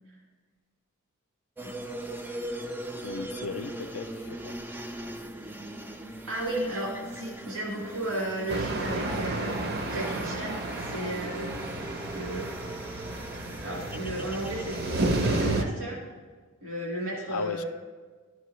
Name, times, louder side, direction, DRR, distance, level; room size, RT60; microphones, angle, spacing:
sound 1, 1.6-15.4, right 1 dB, 10° right, 0.3 m, -39 dB
voice 1, 3.0-4.6 17.3-17.6, left 6 dB, 75° left, 12 dB, 0.4 m, -37 dB
voice 2, 6.3-12.5 13.6-16.0 16.6-17.7, right 1 dB, 80° right, -4 dB, 1.7 m, -34 dB
sound 2, 8.5-15.6, right 2 dB, 45° right, 0.6 m, -32 dB
12.0 x 6.0 x 3.1 m, 1.4 s
head